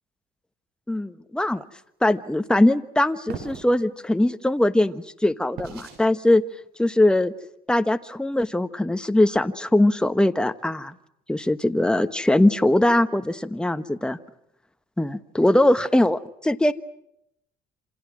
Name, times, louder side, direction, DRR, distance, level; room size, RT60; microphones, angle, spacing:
voice 1, 0.9-1.6 2.0-6.4 6.8-7.3 7.7-10.9 11.3-14.2 15.0-16.7, left 1 dB, 5° left, 10 dB, 1.2 m, -21 dB
sound 1, 3.3-3.7 5.6-6.0, right 6 dB, 75° right, 6.6 m, -37 dB
28.0 x 27.0 x 6.2 m, 0.78 s
cardioid pair, 110°, 17 cm